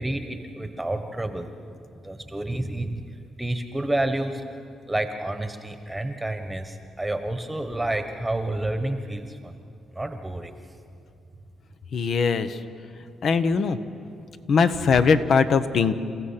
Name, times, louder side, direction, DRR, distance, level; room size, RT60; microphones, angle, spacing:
voice 1, 0.0-1.5 2.0-3.1 3.4-4.4 4.9-9.5 9.9-10.5, right 1 dB, 10° right, 7 dB, 1.3 m, -29 dB
voice 2, 11.9-12.5 13.2-13.8 14.5-15.9, left 5 dB, 60° left, 10 dB, 1.0 m, -20 dB
30.0 x 15.5 x 5.9 m, 2.5 s
cardioid pair, 90°, 0 cm